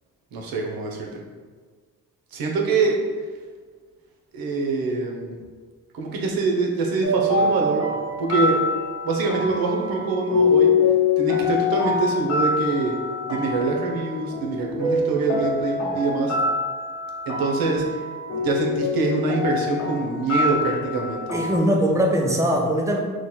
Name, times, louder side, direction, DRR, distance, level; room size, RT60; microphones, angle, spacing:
voice 1, 0.3-1.2 2.3-3.0 4.3-5.4 5.9-7.8 8.2-8.6 9.0-10.7 11.2-12.9 13.3-16.3 17.3-17.9 18.3-21.2, right 3 dB, 75° right, 0 dB, 0.8 m, -24 dB
sound 1, 7.0-21.6, left 3 dB, 50° left, 1.1 m, -25 dB
voice 2, 21.3-23.0, equal, 10° right, 1 dB, 0.4 m, -21 dB
3.1 x 2.3 x 4.2 m, 1.5 s
cardioid pair, 105°, 36 cm